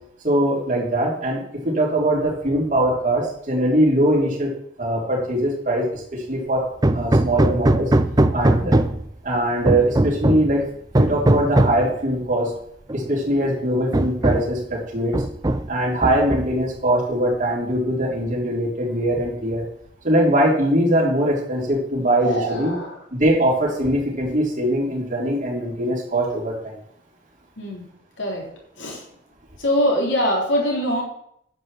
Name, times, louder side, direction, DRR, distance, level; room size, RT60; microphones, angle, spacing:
voice 1, 0.2-4.5 4.8-6.6 6.9-7.9 8.3-8.8 9.2-10.6 11.0-12.5 12.9-15.2 15.7-19.6 20.0-22.7 23.1-26.8, right 1 dB, 45° right, -4 dB, 4.2 m, -21 dB
Hammer, 6.8-9.1 9.7-10.5 10.9-11.9 12.9-13.0 13.4-13.5 13.9-14.6 15.1-15.7 16.0-16.7, right 1 dB, 20° right, 0.5 m, -20 dB
voice 2, 22.2-23.0 27.6-27.8 28.2-28.5 28.8-29.0 29.6-31.0, equal, 90° left, -1 dB, 3.7 m, -23 dB
10.5 x 5.7 x 7.8 m, 0.71 s
head